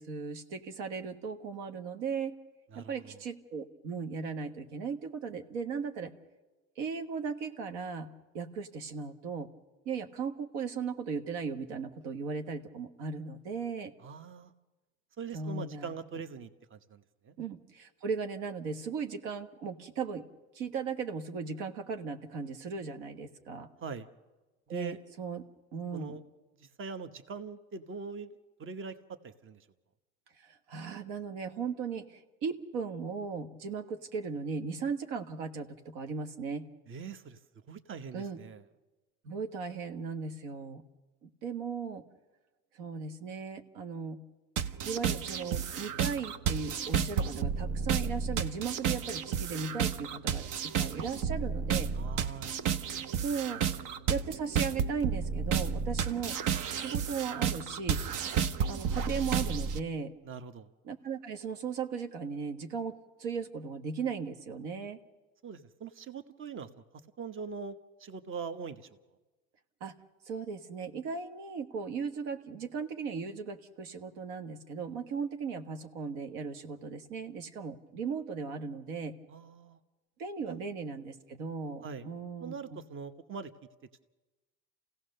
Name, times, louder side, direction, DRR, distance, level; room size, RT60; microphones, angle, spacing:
voice 1, 0.0-2.3 2.7-6.1 6.8-8.1 8.3-9.5 9.8-13.9 15.3-15.9 17.4-20.2 20.5-23.7 24.7-25.4 25.7-26.2 30.4-36.7 38.1-38.4 39.2-40.8 41.2-42.0 42.8-44.2 44.8-51.9 53.2-53.6 54.1-56.4 56.7-58.0 58.7-60.1 60.8-65.0 69.8-69.9 70.3-79.1 80.2-82.8, right 5 dB, 80° right, 7 dB, 1.4 m, -37 dB
voice 2, 2.7-3.2 14.0-14.5 15.2-17.3 23.8-24.1 24.7-25.0 25.9-26.2 26.6-28.3 28.6-29.7 36.9-37.4 37.7-38.6 51.9-52.5 52.8-53.0 60.2-60.7 65.4-66.8 67.2-69.0 79.3-79.8 80.5-80.6 81.8-82.1 82.4-83.5, right 5 dB, 35° right, 10 dB, 1.2 m, -42 dB
sound 1, 44.6-59.8, right 7 dB, 65° right, 1.0 m, -32 dB
28.0 x 16.5 x 6.7 m, 1.2 s
supercardioid pair, 90°, 33 cm